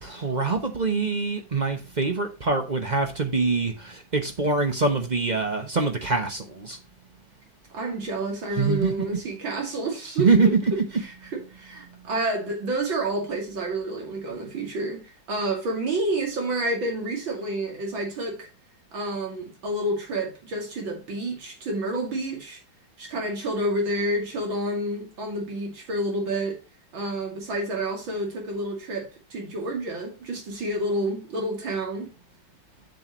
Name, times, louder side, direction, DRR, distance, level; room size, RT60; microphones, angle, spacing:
voice 1, 0.0-6.8 8.6-8.9 10.2-10.5, right 4 dB, 40° right, 0.6 m, -24 dB
voice 2, 7.7-10.5 11.0-18.5 18.9-22.6 23.0-26.6 26.9-32.1, right 1 dB, 85° right, 3.3 m, -29 dB
7.6 x 7.5 x 3.0 m
omnidirectional pair, 2.1 m